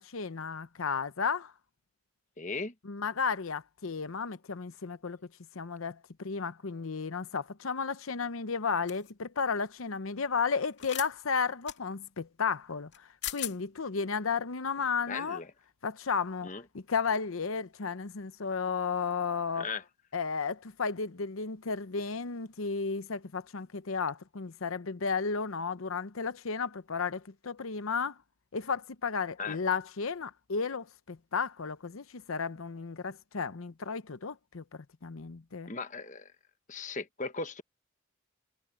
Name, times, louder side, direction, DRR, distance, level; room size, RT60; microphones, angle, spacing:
voice 1, 0.0-1.5 2.8-5.2 5.5-15.4 15.8-16.5 16.7-19.7 20.1-28.2 28.5-35.7, left 5 dB, 80° left, 0.8 m, -33 dB
voice 2, 2.4-2.7 15.1-15.5 16.4-16.6 19.5-19.8 29.4-29.6 35.7-36.3 36.7-37.6, left 4 dB, 35° left, 1.1 m, -37 dB
sound 1, 8.9-9.1 10.8-11.1 11.7-11.8 12.9-13.0 13.2-13.5, left 12 dB, 55° left, 2.8 m, -37 dB
head